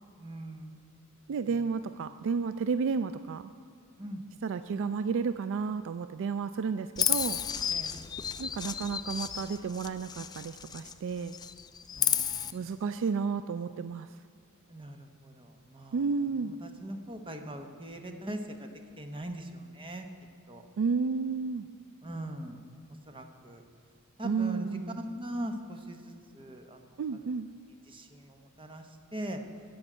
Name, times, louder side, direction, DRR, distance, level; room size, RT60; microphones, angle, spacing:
voice 1, 0.2-0.7 1.5-1.6 4.0-4.2 7.7-8.0 11.9-12.6 14.7-16.1 16.4-18.7 19.0-20.1 20.5-20.6 22.0-22.6 23.1-23.6 24.2-24.7 25.0-27.0 27.9-29.4, right 1 dB, 25° right, 5 dB, 1.0 m, -41 dB
voice 2, 1.3-3.5 4.4-7.4 8.4-11.4 12.5-14.1 15.9-16.5 20.8-21.7 24.2-25.0 27.0-27.5, right 5 dB, 60° right, 12 dB, 0.3 m, -32 dB
Chirp tweet, 7.0-11.0 11.3-12.5, left 8 dB, 20° left, 0.3 m, -32 dB
13.5 x 5.3 x 9.0 m, 2.3 s
head